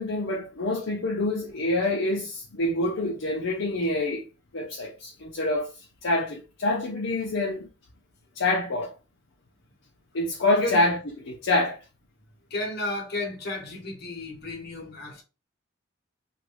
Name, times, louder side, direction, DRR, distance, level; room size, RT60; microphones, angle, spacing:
voice 1, 0.0-4.2 4.5-5.7 6.0-7.7 8.4-8.9 10.1-11.0 11.3-11.8, left 2 dB, 70° left, 0.6 m, -26 dB
voice 2, 12.5-15.2, left 2 dB, 55° left, 1.0 m, -32 dB
3.0 x 2.5 x 3.3 m
head